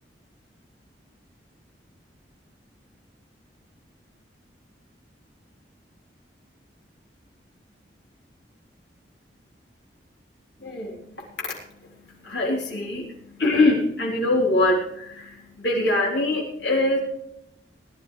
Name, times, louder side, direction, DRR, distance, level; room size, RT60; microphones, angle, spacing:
voice 1, 10.6-17.0, left 2 dB, 80° left, -4 dB, 3.7 m, -24 dB
20.0 x 11.5 x 3.3 m, 0.77 s
head